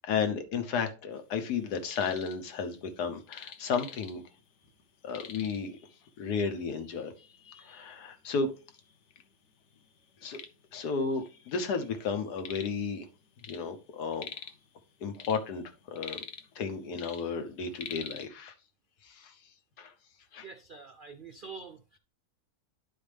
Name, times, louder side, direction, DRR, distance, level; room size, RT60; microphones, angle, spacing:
voice 1, 0.1-4.2 5.0-5.8 6.2-7.1 7.4-8.5 10.2-10.4 10.7-13.1 13.5-14.3 15.0-16.2 16.5-18.5 19.0-19.4 19.8-19.9 20.3-20.5, left 5 dB, 90° left, 1.5 m, -33 dB
sound 1, 1.6-2.4 2.7-4.4 4.7-4.8 5.1-5.8 6.5-6.6 7.2-7.3 8.0-8.1 8.4-9.2 9.7-11.8 12.0-12.9 13.1-14.7 15.0-16.7 16.9-18.3, left 7 dB, 60° left, 0.9 m, -45 dB
voice 2, 20.4-22.0, right 5 dB, 70° right, 0.4 m, -46 dB
10.5 x 4.5 x 3.3 m
omnidirectional pair, 1.7 m